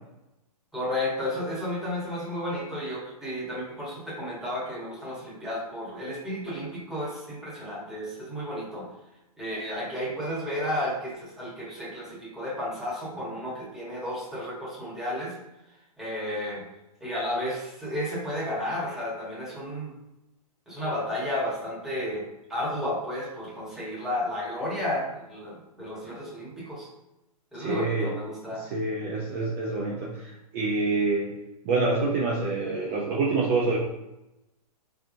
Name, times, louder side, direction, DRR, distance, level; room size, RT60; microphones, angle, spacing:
voice 1, 0.7-8.9 9.4-15.4 16.0-16.6 17.0-19.9 20.7-26.9 27.5-28.7, left 1 dB, ahead, -7 dB, 1.2 m, -32 dB
voice 2, 27.6-28.1 28.6-31.3 31.6-33.8, right 3 dB, 30° right, -4 dB, 0.6 m, -27 dB
4.1 x 3.5 x 2.6 m, 0.94 s
hypercardioid pair, 140°, 20 cm